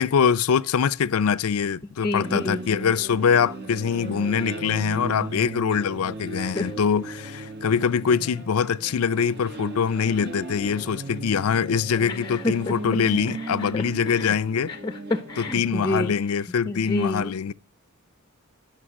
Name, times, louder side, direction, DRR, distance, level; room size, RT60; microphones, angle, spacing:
voice 1, 0.0-14.7 15.4-17.5, left 7 dB, 85° left, 0.4 m, -23 dB
voice 2, 2.0-2.6 6.4-6.7 12.1-12.5 13.6-14.3 14.7-16.1 16.7-17.3, left 1 dB, 20° left, 0.5 m, -29 dB
sound 1, 2.2-16.1, right 2 dB, 50° right, 1.4 m, -37 dB
11.0 x 6.5 x 6.3 m
head